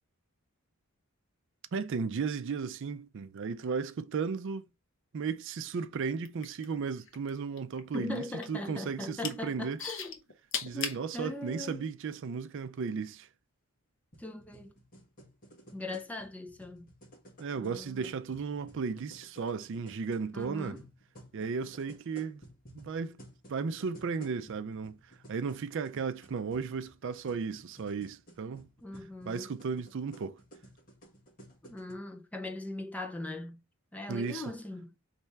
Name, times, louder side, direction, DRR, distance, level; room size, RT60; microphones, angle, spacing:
voice 1, 1.7-4.7 5.1-9.8 10.6-13.3 17.4-20.8 21.3-22.4 22.7-23.2 23.5-25.0 25.3-28.7 29.3-30.4 34.1-34.4, right 5 dB, 55° right, 0.4 m, -35 dB
sound 1, 6.2-7.3 7.6-8.6 9.0-9.4 9.8-11.0 11.7-11.8, left 6 dB, 60° left, 0.9 m, -36 dB
voice 2, 7.9-10.2 10.7-11.9 14.2-14.7 15.7-16.9 17.5-18.1 20.3-20.9 28.8-29.5 31.6-33.6 33.9-34.9, left 2 dB, 5° left, 0.4 m, -40 dB
sound 2, 14.1-31.9, right 1 dB, 40° left, 1.7 m, -55 dB
4.2 x 3.3 x 3.3 m
head